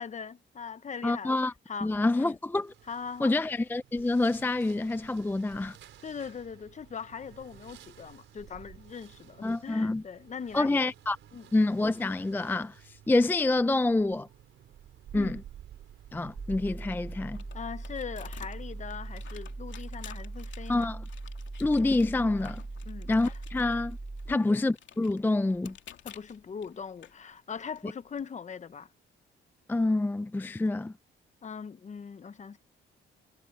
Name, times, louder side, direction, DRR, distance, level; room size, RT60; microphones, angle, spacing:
voice 1, 0.0-1.4 1.7-2.4 2.9-3.3 6.0-10.7 11.3-11.5 15.1-15.4 17.5-20.9 22.9-23.4 24.3-24.5 26.0-28.9 31.4-32.6, left 6 dB, 35° left, 1.0 m, -40 dB
voice 2, 1.0-1.5 1.8-2.7 3.2-5.8 9.4-10.0 10.5-11.2 11.5-14.3 15.1-15.4 16.1-17.4 20.7-21.0 21.6-22.6 23.1-24.0 24.3-25.7 29.7-30.9, left 2 dB, 10° left, 0.4 m, -27 dB
sound 1, 2.5-19.7, right 11 dB, 75° right, 4.8 m, -52 dB
sound 2, 16.4-24.4, right 2 dB, 15° right, 0.8 m, -40 dB
sound 3, 16.7-28.2, left 10 dB, 70° left, 2.8 m, -53 dB
cardioid pair, 90°, 20 cm